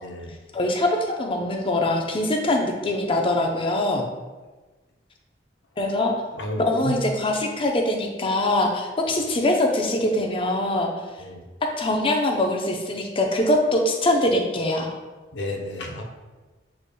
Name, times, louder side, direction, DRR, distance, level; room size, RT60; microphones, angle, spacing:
voice 1, 0.0-0.4 6.3-7.0 11.2-11.4 15.3-16.0, left 1 dB, 80° left, 1 dB, 0.7 m, -32 dB
voice 2, 0.5-4.1 5.8-6.1 6.6-10.9 11.8-14.9, left 1 dB, 30° left, 2 dB, 0.6 m, -23 dB
6.7 x 3.4 x 2.2 m, 1.2 s
head